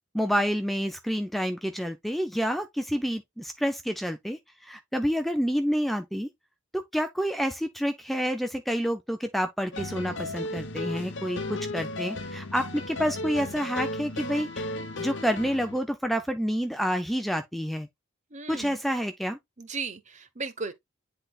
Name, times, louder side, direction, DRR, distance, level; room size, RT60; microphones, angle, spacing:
voice 1, 0.1-6.3 6.7-17.9 18.5-19.4, equal, ahead, 0.5 m, -28 dB
sound 1, 9.7-15.8, left 2 dB, 60° left, 0.9 m, -35 dB
voice 2, 18.3-18.8 19.6-20.7, right 4 dB, 35° right, 0.9 m, -36 dB
10.0 x 4.0 x 2.3 m
head